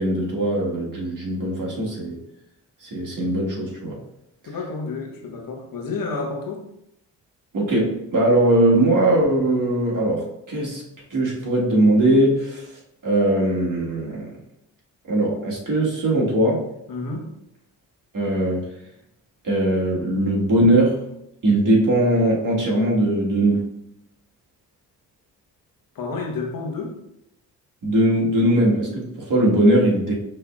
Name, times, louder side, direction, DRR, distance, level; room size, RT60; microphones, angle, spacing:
voice 1, 0.0-2.2 2.8-4.0 7.5-10.8 11.1-12.7 13.0-14.3 15.0-16.7 18.1-18.7 19.4-21.0 21.4-23.7 27.8-30.1, right 1 dB, 50° right, -3 dB, 1.7 m, -20 dB
voice 2, 4.5-6.6 16.9-17.3 25.9-27.0, left 3 dB, 55° left, 1 dB, 1.1 m, -30 dB
5.8 x 3.3 x 2.4 m, 0.80 s
hypercardioid pair, 50°, 42 cm